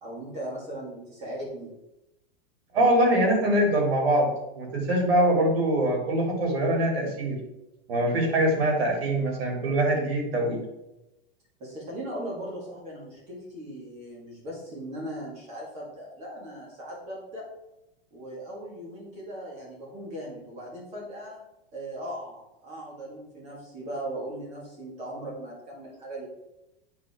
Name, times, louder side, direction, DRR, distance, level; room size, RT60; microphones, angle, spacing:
voice 1, 0.0-1.7 11.6-17.4 18.1-21.4 21.7-26.3, right 1 dB, 20° right, -3 dB, 2.0 m, -38 dB
voice 2, 2.7-4.3 4.5-7.4 7.9-10.6, right 1 dB, 80° right, 0 dB, 2.9 m, -23 dB
9.1 x 4.7 x 3.6 m, 0.90 s
supercardioid pair, 175°, 30 cm